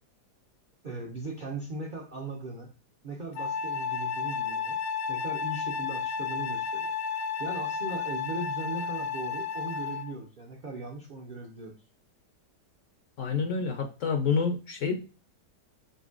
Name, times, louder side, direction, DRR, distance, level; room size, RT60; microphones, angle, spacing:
voice 1, 0.8-2.7 3.0-4.8 5.1-11.8, right 2 dB, 70° right, 0 dB, 0.4 m, -39 dB
Wind instrument woodwind instrument, 3.4-10.1, left 5 dB, 90° left, 1.3 m, -32 dB
voice 2, 13.2-15.0, left 5 dB, 60° left, 5 dB, 0.8 m, -28 dB
4.3 x 3.9 x 2.4 m, 0.32 s
omnidirectional pair, 1.8 m